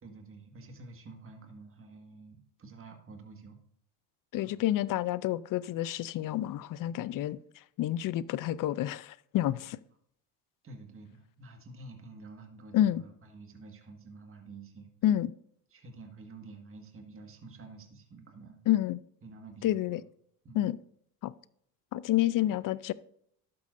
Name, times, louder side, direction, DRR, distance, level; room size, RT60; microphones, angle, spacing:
voice 1, 0.0-3.6 4.4-4.6 10.6-14.9 15.7-18.6 19.2-20.0 20.4-20.6, right 3 dB, 30° right, 1.8 m, -49 dB
voice 2, 4.3-9.8 12.7-13.0 15.0-15.3 18.7-19.0 19.6-20.0 20.5-20.8 21.2-21.3 21.9-22.9, left 13 dB, 45° left, 0.5 m, -29 dB
12.0 x 8.4 x 2.6 m
supercardioid pair, 90°, 45 cm